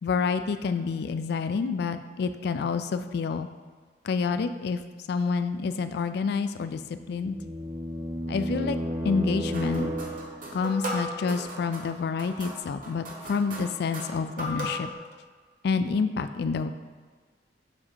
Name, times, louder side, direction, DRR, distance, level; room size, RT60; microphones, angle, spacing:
voice 1, 0.0-3.5 4.0-4.8 5.1-7.4 8.3-8.8 9.0-9.9 10.5-14.9 15.6-16.7, left 5 dB, 65° left, 11 dB, 0.3 m, -28 dB
sound 1, 6.7-10.6, equal, 15° right, 0.4 m, -33 dB
sound 2, 9.5-14.9, equal, 50° right, 1.1 m, -37 dB
7.1 x 2.8 x 5.0 m, 1.5 s
head